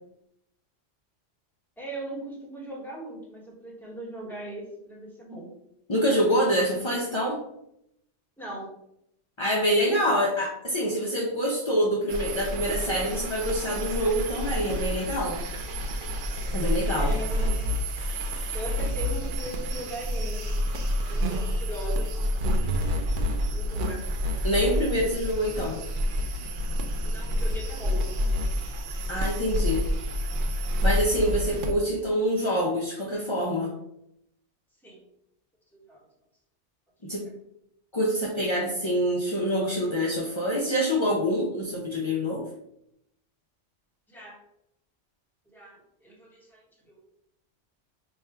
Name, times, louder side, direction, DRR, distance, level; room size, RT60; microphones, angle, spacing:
voice 1, 1.8-5.5 8.4-8.7 16.9-17.8 18.5-20.5 20.9-22.3 23.5-24.0 27.0-28.1 34.8-35.0 35.7-36.0 37.1-37.2 44.1-44.4 45.5-47.0, right 1 dB, ahead, -4 dB, 1.0 m, -39 dB
voice 2, 5.9-7.4 9.4-15.4 16.5-17.1 24.4-25.8 29.1-29.9 30.8-33.7 37.0-37.2 37.9-42.5, equal, 40° left, -3 dB, 0.4 m, -26 dB
sound 1, 12.1-31.7, equal, 60° right, 0.5 m, -28 dB
3.1 x 2.4 x 4.3 m, 0.77 s
omnidirectional pair, 1.2 m